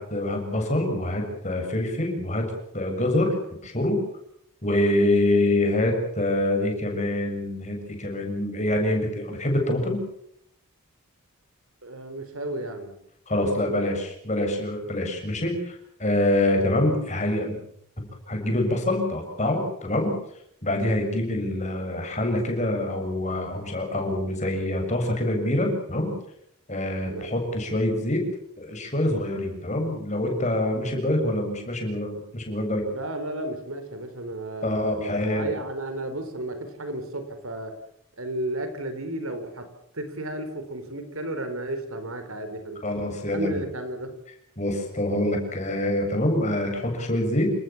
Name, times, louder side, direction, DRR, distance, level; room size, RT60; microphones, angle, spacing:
voice 1, 0.0-3.3 3.6-4.0 4.6-10.0 13.3-17.6 18.0-20.1 20.6-26.1 26.7-28.2 28.6-32.8 34.6-35.5 42.8-43.6 44.6-47.5, left 1 dB, 30° left, 3 dB, 7.0 m, -25 dB
voice 2, 11.8-12.9 13.4-13.8 27.0-27.4 32.9-37.7 38.2-39.6 39.9-42.8 43.3-44.1, right 1 dB, 75° right, 8 dB, 4.2 m, -33 dB
29.0 x 19.5 x 7.3 m, 0.73 s
head